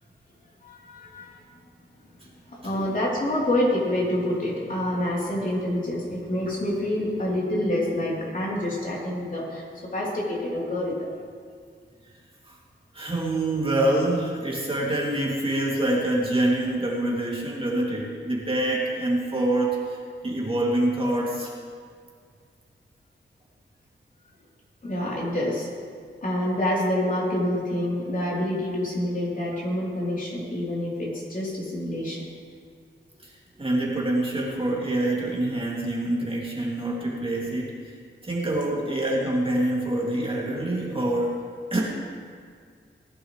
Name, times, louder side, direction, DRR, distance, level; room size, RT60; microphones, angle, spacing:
voice 1, 0.6-1.4 2.5-9.6 9.9-11.1 24.8-25.7 26.2-32.2, left 1 dB, 45° left, -6 dB, 3.6 m, -27 dB
voice 2, 12.9-20.0 20.2-21.5 33.2-33.3 33.6-37.7 38.2-41.4 41.7-41.8, right 1 dB, 25° right, -4 dB, 2.6 m, -25 dB
19.5 x 11.0 x 3.3 m, 2.1 s
wide cardioid pair, 115°, 20 cm